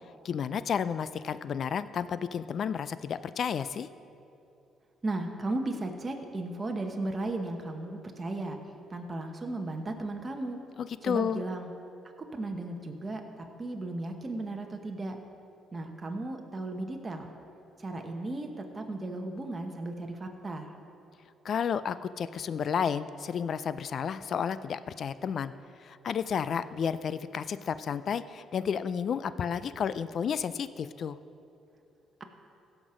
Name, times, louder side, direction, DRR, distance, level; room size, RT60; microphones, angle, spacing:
voice 1, 0.2-3.9 10.8-11.4 21.4-25.5 25.8-31.2, left 7 dB, 55° left, 14 dB, 0.4 m, -31 dB
voice 2, 5.0-8.6 8.9-10.6 11.0-11.7 12.3-15.2 15.7-17.3 17.8-20.7, right 2 dB, 30° right, 3 dB, 1.2 m, -35 dB
16.0 x 6.0 x 5.1 m, 2.7 s
supercardioid pair, 70°, 0 cm